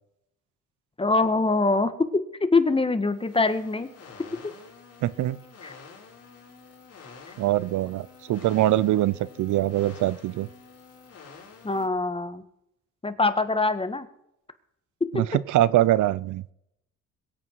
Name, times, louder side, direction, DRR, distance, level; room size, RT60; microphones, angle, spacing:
voice 1, 1.0-1.9 2.5-3.9 5.6-5.7 11.6-12.4 13.0-14.1, left 3 dB, 20° left, 10 dB, 1.6 m, -23 dB
sound 1, 2.9-11.9, left 5 dB, 55° left, 5.1 m, -49 dB
voice 2, 5.0-5.4 7.4-10.5 15.1-16.4, right 14 dB, 75° right, 19 dB, 0.6 m, -23 dB
22.0 x 8.7 x 4.6 m, 0.77 s
cardioid pair, 90°, 30 cm